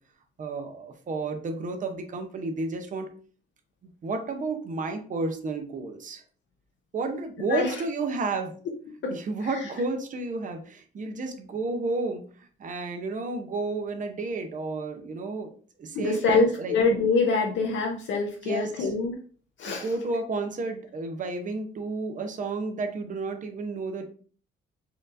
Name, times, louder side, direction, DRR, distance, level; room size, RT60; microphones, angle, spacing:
voice 1, 0.4-3.1 4.0-6.2 6.9-8.5 9.1-12.2 12.6-15.5 15.8-16.8 18.4-18.9 19.6-24.0, right 3 dB, 40° right, 5 dB, 0.7 m, -31 dB
voice 2, 7.5-7.8 9.0-9.1 9.4-9.6 15.9-19.1 19.6-19.9, left 3 dB, 70° left, 0 dB, 0.6 m, -25 dB
4.4 x 2.5 x 2.5 m, 0.43 s
cardioid pair, 90°, 20 cm